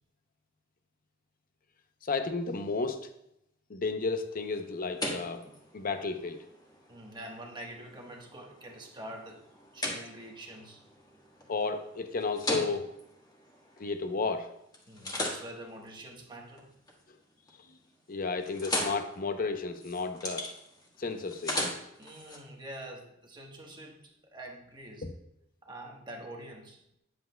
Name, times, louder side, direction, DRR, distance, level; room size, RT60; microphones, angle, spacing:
voice 1, 2.0-3.0 3.7-5.4 5.7-6.4 11.5-12.9 13.8-14.5 17.7-17.8 18.1-20.5 21.0-21.7 25.0-25.1, left 4 dB, 45° left, 8 dB, 0.6 m, -32 dB
sound 1, 4.3-14.3 14.7-17.0 17.4-17.8 18.1-22.4, left 1 dB, 20° left, 1.5 m, -39 dB
voice 2, 6.9-9.4 9.7-10.8 14.9-16.7 22.0-25.1 25.6-26.8, right 1 dB, 25° right, 0 dB, 1.2 m, -45 dB
9.9 x 7.7 x 2.2 m, 0.80 s
head